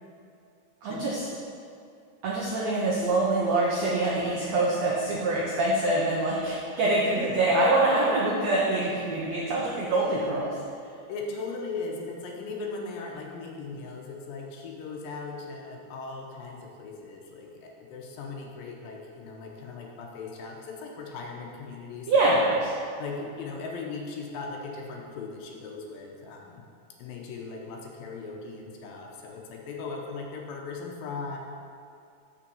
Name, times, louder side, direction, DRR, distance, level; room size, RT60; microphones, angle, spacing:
voice 1, 0.8-1.2 2.2-10.5 22.1-22.7, right 2 dB, 80° right, -4 dB, 1.5 m, -25 dB
voice 2, 11.1-22.4 23.0-26.6 27.0-31.4, left 4 dB, 75° left, 0 dB, 2.5 m, -38 dB
6.2 x 5.7 x 6.9 m, 2.4 s
omnidirectional pair, 4.3 m